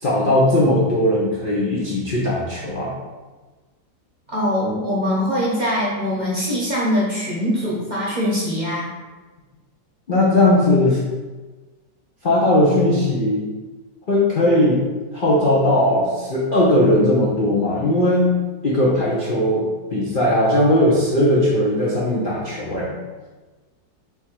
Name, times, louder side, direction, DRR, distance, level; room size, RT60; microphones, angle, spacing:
voice 1, 0.0-2.9 10.1-11.0 12.2-13.4 14.1-14.8 15.1-18.4 18.6-22.9, left 1 dB, 65° left, -6 dB, 0.5 m, -18 dB
voice 2, 4.3-8.9, equal, 35° right, -6 dB, 0.8 m, -22 dB
3.5 x 3.1 x 4.3 m, 1.3 s
omnidirectional pair, 2.0 m